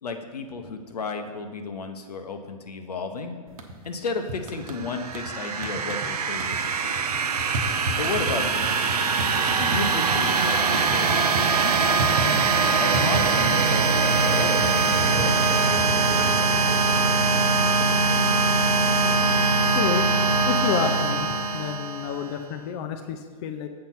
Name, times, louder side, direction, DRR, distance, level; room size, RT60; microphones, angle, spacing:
voice 1, 0.0-3.4 3.8-7.0 8.0-8.7 9.6-12.0 12.8-15.9, left 4 dB, 85° left, 5 dB, 0.9 m, -33 dB
sound 1, 3.5-4.0 4.3-5.3 5.6-6.1 6.3-10.2 10.5-12.6 12.9-13.8 14.0-16.9, right 1 dB, 65° right, 1.0 m, -32 dB
sound 2, 4.7-22.3, right 4 dB, 80° right, 0.5 m, -22 dB
voice 2, 19.7-20.1 20.5-23.7, left 8 dB, 45° left, 6 dB, 0.6 m, -29 dB
7.6 x 4.4 x 5.8 m, 1.6 s
hypercardioid pair, 120°, 20 cm